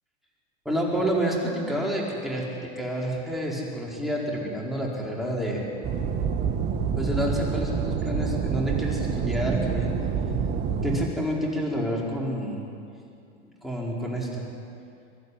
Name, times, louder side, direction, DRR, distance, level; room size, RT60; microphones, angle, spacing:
voice 1, 0.6-5.6 6.9-9.9 10.8-12.6 13.6-14.5, equal, ahead, -4 dB, 4.9 m, -29 dB
sound 1, 5.8-11.1, right 6 dB, 30° right, 1.5 m, -27 dB
24.0 x 12.0 x 9.8 m, 2.5 s
hypercardioid pair, 115°, 34 cm